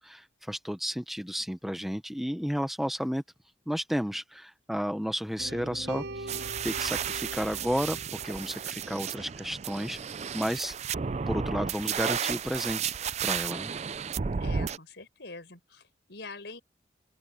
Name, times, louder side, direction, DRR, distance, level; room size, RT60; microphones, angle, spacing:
voice 1, 0.0-3.2 3.7-6.4 6.6-10.8 11.3-12.9 13.2-13.7, equal, ahead, 0.8 m, -32 dB
sound 1, 5.4-9.5, right 1 dB, 75° right, 5.0 m, -42 dB
sound 2, 6.3-14.8, right 7 dB, 35° right, 0.4 m, -33 dB
voice 2, 14.4-16.6, left 3 dB, 65° left, 5.1 m, -44 dB
open air
head